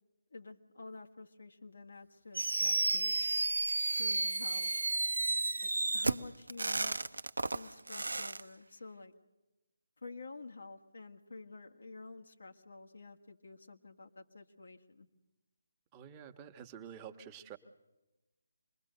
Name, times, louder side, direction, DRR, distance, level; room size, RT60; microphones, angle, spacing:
voice 1, 0.3-3.3 3.9-4.7 5.6-7.0 7.5-9.1 10.0-15.1, left 3 dB, 70° left, 3 dB, 1.9 m, -50 dB
Fireworks, 2.3-8.4, right 2 dB, 80° right, 0.7 m, -32 dB
voice 2, 15.9-17.6, right 8 dB, 20° right, 6 dB, 1.4 m, -49 dB
26.5 x 21.5 x 6.8 m, 1.1 s
figure-of-eight pair, 150°, 0 cm